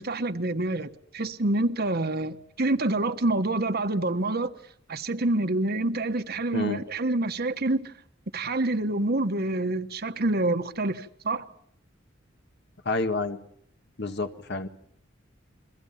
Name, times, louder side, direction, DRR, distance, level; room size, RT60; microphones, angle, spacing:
voice 1, 0.0-4.5 4.9-7.9 8.3-11.4, right 2 dB, 55° right, 1.4 m, -27 dB
voice 2, 12.9-13.4 14.0-14.7, left 3 dB, 60° left, 1.7 m, -29 dB
29.5 x 22.5 x 5.8 m
head